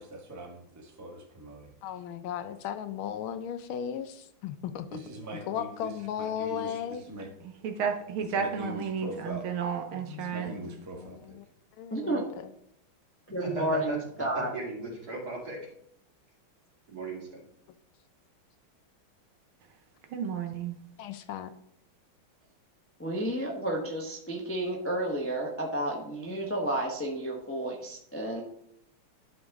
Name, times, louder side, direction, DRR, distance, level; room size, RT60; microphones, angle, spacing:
voice 1, 0.0-1.7 4.9-5.9 6.2-7.3 8.3-9.4 10.2-11.4, right 1 dB, 10° right, 1 dB, 0.9 m, -42 dB
voice 2, 1.8-5.0 5.5-7.0 9.9-11.5 11.8-12.3 21.0-21.5, left 9 dB, 75° left, 10 dB, 1.3 m, -36 dB
voice 3, 7.6-10.5 20.1-20.8, right 7 dB, 75° right, 6 dB, 1.6 m, -32 dB
voice 4, 11.9-12.2 13.3-14.5 23.0-28.4, right 1 dB, 15° left, -1 dB, 0.4 m, -31 dB
voice 5, 13.4-14.0 14.5-15.6 16.9-17.4, right 2 dB, 45° right, -3 dB, 2.8 m, -37 dB
11.5 x 5.2 x 3.5 m, 0.70 s
omnidirectional pair, 2.4 m